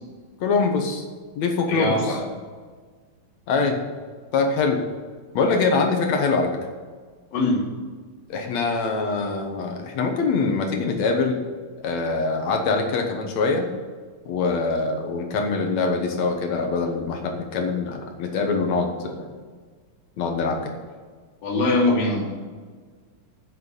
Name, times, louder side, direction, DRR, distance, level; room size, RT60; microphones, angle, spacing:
voice 1, 0.4-1.0 1.4-2.2 3.5-3.8 4.3-4.8 5.3-6.6 8.3-11.4 11.8-13.7 14.3-19.3 20.2-20.7, left 4 dB, 60° left, 3 dB, 2.2 m, -23 dB
voice 2, 1.7-2.2 7.3-7.6 21.4-22.3, left 2 dB, 85° left, -2 dB, 4.1 m, -22 dB
8.7 x 7.1 x 8.1 m, 1.5 s
omnidirectional pair, 4.0 m